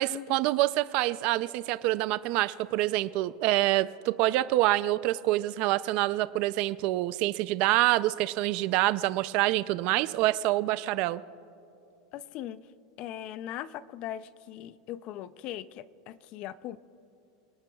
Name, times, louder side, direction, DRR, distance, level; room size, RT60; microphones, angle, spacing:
voice 1, 0.0-11.2, right 17 dB, 45° right, 15 dB, 0.4 m, -26 dB
voice 2, 12.1-12.6 13.0-16.8, left 12 dB, 40° left, 16 dB, 0.4 m, -39 dB
26.5 x 18.0 x 2.3 m, 2.7 s
supercardioid pair, 160°, 3 cm